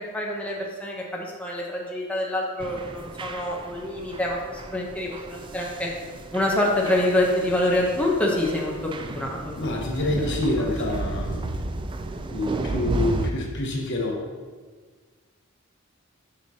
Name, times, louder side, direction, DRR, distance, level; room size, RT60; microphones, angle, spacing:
voice 1, 0.0-5.9 6.3-9.5 10.2-10.4, left 1 dB, 5° left, -3 dB, 0.7 m, -26 dB
sound 1, 2.6-13.3, right 2 dB, 25° right, 0.3 m, -33 dB
voice 2, 9.6-11.4 12.3-14.2, left 1 dB, 60° left, 0 dB, 1.1 m, -27 dB
7.5 x 5.9 x 2.8 m, 1.5 s
head